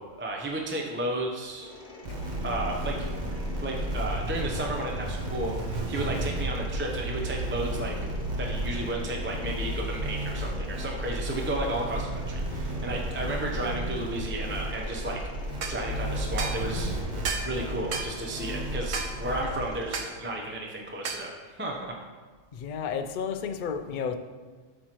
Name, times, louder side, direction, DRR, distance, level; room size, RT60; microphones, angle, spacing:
voice 1, 0.0-1.7 2.4-8.0 8.4-15.2 15.6-16.9 17.4-21.3 21.6-21.9, right 1 dB, 15° right, 0 dB, 0.6 m, -33 dB
Mechanisms, 1.6-20.1, left 2 dB, 35° left, 1.1 m, -46 dB
sound 1, 2.0-19.7, right 1 dB, 40° right, 0.9 m, -33 dB
sound 2, 15.6-15.8 16.4-16.6 17.2-17.5 17.9-18.1 18.9-19.1 19.9-20.1 21.0-21.3, right 5 dB, 80° right, 1.1 m, -32 dB
voice 2, 22.5-24.1, left 6 dB, 60° left, 7 dB, 0.5 m, -32 dB
8.6 x 6.3 x 3.0 m, 1.5 s
omnidirectional pair, 1.3 m